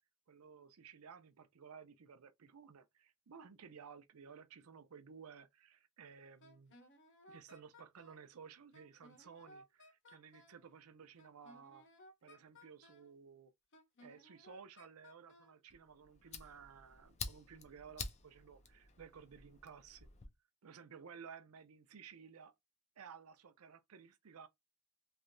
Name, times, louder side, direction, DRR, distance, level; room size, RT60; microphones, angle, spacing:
voice 1, 0.3-6.7 7.3-11.9 12.2-13.5 14.0-20.1 20.6-22.5 23.0-24.5, right 6 dB, 70° right, 0.5 m, -56 dB
Wind instrument woodwind instrument, 6.4-8.3 8.7-10.6 11.2-13.1 13.7-15.6, left 1 dB, 55° left, 0.8 m, -61 dB
Fire, 15.7-20.3, left 5 dB, 30° left, 0.5 m, -49 dB
3.1 x 2.7 x 2.6 m
head